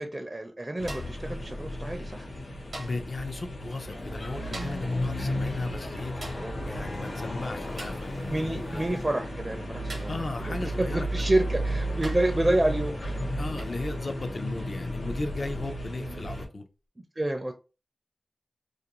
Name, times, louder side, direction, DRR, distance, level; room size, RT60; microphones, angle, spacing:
voice 1, 0.0-2.3 6.3-7.0 8.3-10.2 10.8-12.9 16.0-16.3 17.2-17.5, right 1 dB, 30° right, 0.4 m, -29 dB
sound 1, 0.8-16.5, equal, 80° left, 0.9 m, -34 dB
sound 2, 0.9-1.3 2.7-3.1 4.5-4.9 6.2-6.5 7.8-8.1 9.9-10.2 11.3-11.4 12.0-12.4 13.6-13.8 15.4-15.6, right 2 dB, 85° right, 0.7 m, -42 dB
voice 2, 2.8-6.2 6.6-8.8 10.1-11.1 13.4-16.6, left 2 dB, 55° left, 0.5 m, -36 dB
Speech / Shout / Subway metro underground, 3.9-9.1, left 1 dB, 40° left, 0.9 m, -44 dB
2.5 x 2.1 x 2.9 m
cardioid pair, 50°, 0 cm